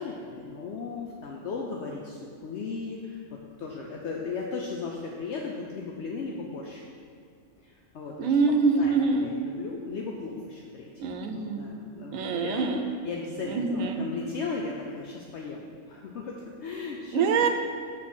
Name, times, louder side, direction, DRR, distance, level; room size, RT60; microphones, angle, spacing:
voice 1, 0.0-6.8 7.6-8.3 8.7-9.0 9.2-10.9 11.3-12.7 13.0-17.2, left 4 dB, 65° left, -1 dB, 0.9 m, -36 dB
voice 2, 8.2-9.3 11.0-11.8 12.1-12.8 13.4-14.0 17.1-17.5, right 4 dB, 90° right, 5 dB, 1.1 m, -25 dB
6.3 x 4.2 x 6.1 m, 2.2 s
omnidirectional pair, 1.4 m